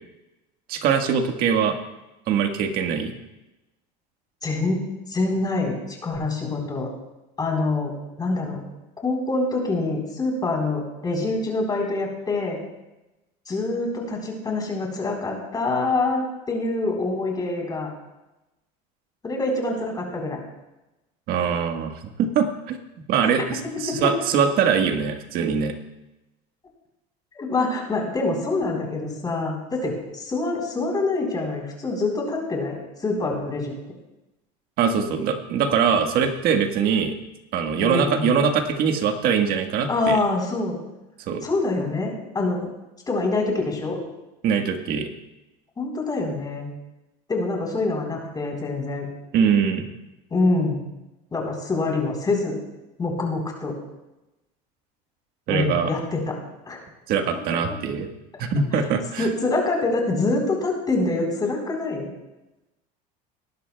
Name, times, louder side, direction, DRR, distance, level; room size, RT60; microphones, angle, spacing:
voice 1, 0.7-1.8 2.3-3.1 21.3-22.8 23.1-25.7 34.8-37.1 37.5-40.2 41.3-41.5 44.4-45.1 49.3-49.9 55.5-55.9 57.1-58.1 58.4-59.3, right 7 dB, 55° right, 5 dB, 1.5 m, -22 dB
voice 2, 4.4-4.8 5.1-6.9 7.4-7.9 8.2-8.6 9.0-12.6 13.5-17.9 19.2-20.4 23.9-24.0 27.3-32.8 33.0-33.7 37.8-38.5 39.9-40.8 41.4-42.7 43.1-44.0 45.8-46.7 47.3-49.1 50.3-50.8 51.3-52.6 53.0-53.8 55.5-56.3 56.7-56.8 59.2-62.1, left 3 dB, 20° left, 0 dB, 3.9 m, -25 dB
19.0 x 11.5 x 2.3 m, 0.99 s
supercardioid pair, 120°, 18 cm